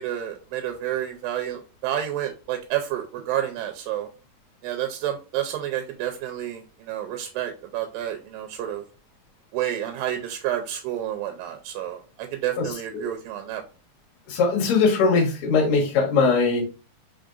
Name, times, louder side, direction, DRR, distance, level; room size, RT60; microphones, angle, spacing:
voice 1, 0.0-4.1 4.6-6.6 6.9-8.8 9.5-13.6, right 11 dB, 85° right, 5 dB, 2.3 m, -29 dB
voice 2, 12.6-13.1 14.3-16.6, left 4 dB, 50° left, -2 dB, 1.9 m, -21 dB
5.2 x 3.7 x 2.4 m, 0.34 s
omnidirectional pair, 4.1 m